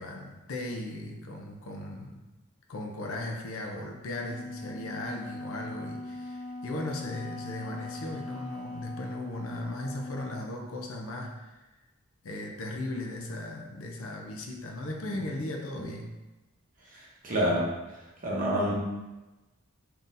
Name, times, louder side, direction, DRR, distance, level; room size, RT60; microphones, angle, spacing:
voice 1, 0.0-2.2 2.7-11.6 12.2-16.1, left 1 dB, 65° left, 1 dB, 0.5 m, -37 dB
Wind instrument woodwind instrument, 4.2-10.5, left 2 dB, 85° left, 0.9 m, -41 dB
voice 2, 16.9-17.7 18.2-18.7, equal, 40° right, -4 dB, 0.8 m, -27 dB
3.7 x 2.8 x 2.5 m, 1.1 s
head